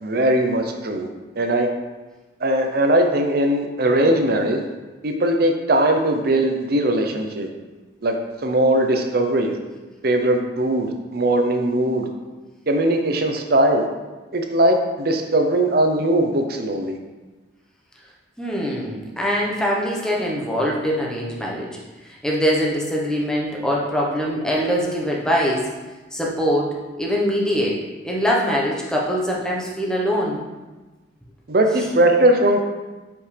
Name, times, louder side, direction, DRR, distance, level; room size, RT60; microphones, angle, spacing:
voice 1, 0.0-1.1 1.4-1.7 2.4-4.6 5.0-7.5 8.0-8.1 8.4-9.5 10.0-12.1 12.7-13.9 14.3-17.0 31.5-32.6, right 1 dB, 50° right, 4 dB, 0.6 m, -19 dB
voice 2, 18.4-21.7 22.0-25.7 26.1-27.8 28.0-30.4 31.7-31.9, equal, 5° left, -3 dB, 1.0 m, -23 dB
7.7 x 5.3 x 3.3 m, 1.2 s
head